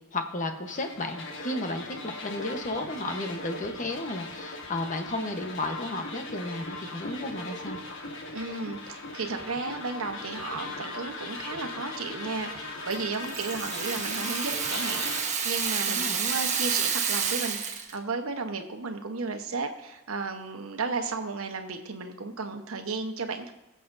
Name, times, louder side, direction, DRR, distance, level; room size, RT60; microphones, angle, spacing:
voice 1, 0.1-7.8 15.9-16.2, left 2 dB, 40° left, 5 dB, 1.1 m, -33 dB
sound 1, 0.7-15.2, left 2 dB, 60° left, 1.5 m, -39 dB
voice 2, 8.3-23.5, right 4 dB, 85° right, 5 dB, 1.1 m, -34 dB
Rattle (instrument), 12.9-18.0, right 6 dB, 35° right, 1.1 m, -29 dB
21.5 x 7.6 x 2.7 m, 0.99 s
head